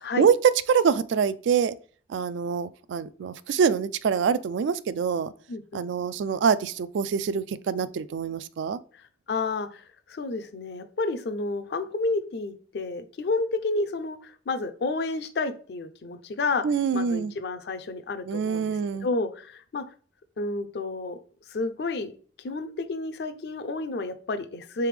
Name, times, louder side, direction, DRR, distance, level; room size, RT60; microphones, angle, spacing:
voice 1, 0.2-1.8 2.1-5.3 5.7-8.8 16.6-17.3 18.3-19.1, right 6 dB, 85° right, 0.3 m, -25 dB
voice 2, 5.5-5.9 9.3-9.8 10.1-16.6 16.9-18.8 19.0-19.8 20.4-21.2 21.5-22.1 22.4-24.9, left 3 dB, 60° left, 0.4 m, -30 dB
3.8 x 3.4 x 3.2 m
head